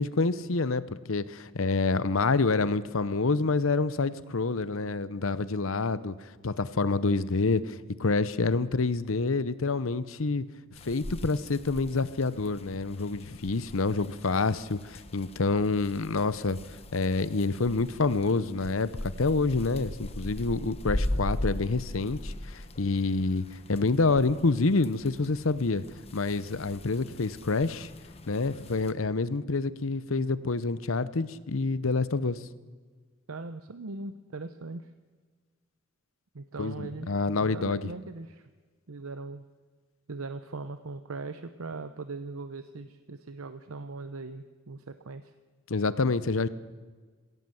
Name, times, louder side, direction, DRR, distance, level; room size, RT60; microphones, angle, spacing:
voice 1, 0.0-6.1 6.4-10.4 10.8-16.6 16.9-25.8 26.1-27.9 28.3-32.4 36.6-37.8 45.7-46.5, left 3 dB, 75° left, 15 dB, 0.8 m, -27 dB
sound 1, 10.7-28.9, left 1 dB, 30° left, 0.9 m, -40 dB
voice 2, 33.3-34.9 36.3-38.4 38.9-39.4 40.1-45.3, right 3 dB, 85° right, 10 dB, 0.8 m, -40 dB
20.0 x 16.5 x 7.8 m, 1.4 s
head